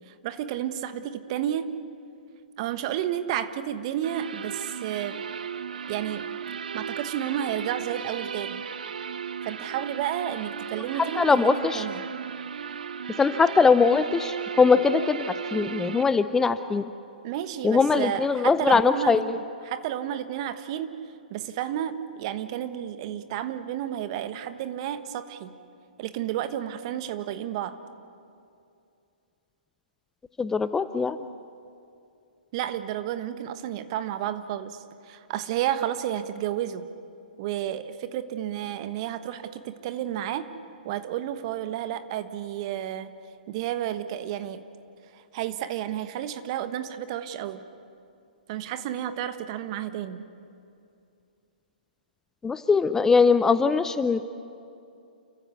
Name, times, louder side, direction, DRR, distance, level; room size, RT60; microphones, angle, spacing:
voice 1, 0.1-1.7 2.6-5.3 5.9-6.3 6.7-8.6 9.4-12.0 17.2-20.9 21.3-25.5 26.0-27.8 32.5-36.8 37.4-40.5 40.8-43.1 43.5-44.6 45.1-47.6 48.5-50.3, right 11 dB, 40° right, 11 dB, 1.3 m, -31 dB
sound 1, 4.0-16.0, right 7 dB, 70° right, 0.8 m, -36 dB
voice 2, 11.0-11.9 13.2-16.8 17.6-19.4 30.4-31.2 52.4-54.2, left 4 dB, 10° left, 12 dB, 0.5 m, -21 dB
29.5 x 15.0 x 8.3 m, 2.5 s
figure-of-eight pair, 125°, 5 cm